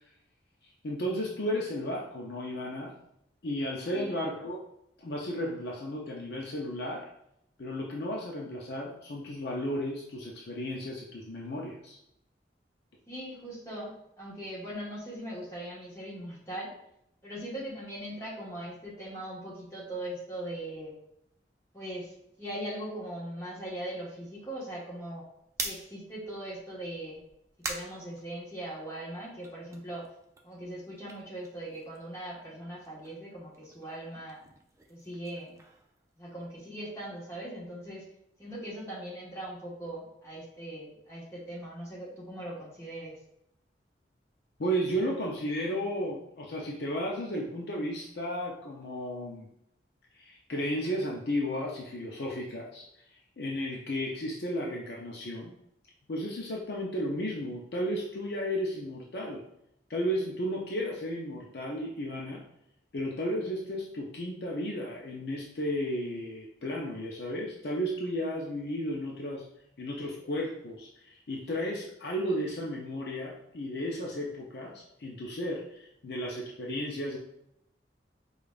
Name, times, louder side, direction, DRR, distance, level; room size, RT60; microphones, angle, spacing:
voice 1, 0.8-2.9 3.4-4.6 5.0-7.1 7.6-12.0 44.6-49.5 50.1-52.9 53.4-55.5 56.1-59.4 59.9-62.4 62.9-69.5 69.8-77.2, equal, 60° left, -2 dB, 0.5 m, -34 dB
voice 2, 13.1-16.7 17.2-20.9 21.7-22.1 22.4-25.2 25.6-27.2 27.7-30.0 30.4-34.4 34.9-35.5 36.2-38.0 38.4-43.1, right 1 dB, 15° left, -7 dB, 1.3 m, -40 dB
sound 1, 25.4-28.9 29.3-32.2 32.5-36.7, right 3 dB, 15° right, 0.3 m, -44 dB
5.0 x 2.4 x 2.4 m, 0.78 s
head